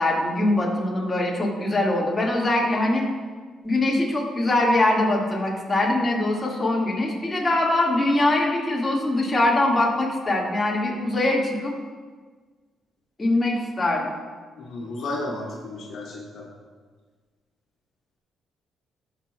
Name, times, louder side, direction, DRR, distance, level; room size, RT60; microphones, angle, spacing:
voice 1, 0.0-3.1 3.6-11.7 13.2-14.1, left 2 dB, 20° left, -3 dB, 1.8 m, -22 dB
voice 2, 14.6-16.5, left 2 dB, 70° left, -3 dB, 1.3 m, -33 dB
16.5 x 5.9 x 2.3 m, 1.5 s
cardioid pair, 90°, 0 cm